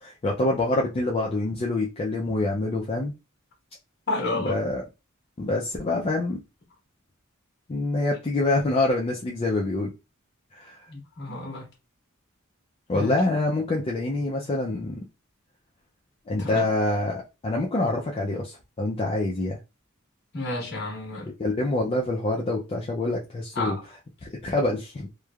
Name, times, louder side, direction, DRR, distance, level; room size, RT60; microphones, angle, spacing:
voice 1, 0.0-3.1 4.3-4.8 5.4-6.4 7.7-9.9 10.5-10.8 11.3-11.4 12.9-15.0 16.3-19.6 21.4-23.8 24.2-25.1, left 2 dB, 30° left, 0.4 m, -26 dB
voice 2, 4.1-4.6 10.9-11.7 12.9-13.2 16.4-16.7 20.3-21.3 23.5-23.8, left 2 dB, 50° left, 1.2 m, -30 dB
3.1 x 2.1 x 2.3 m
head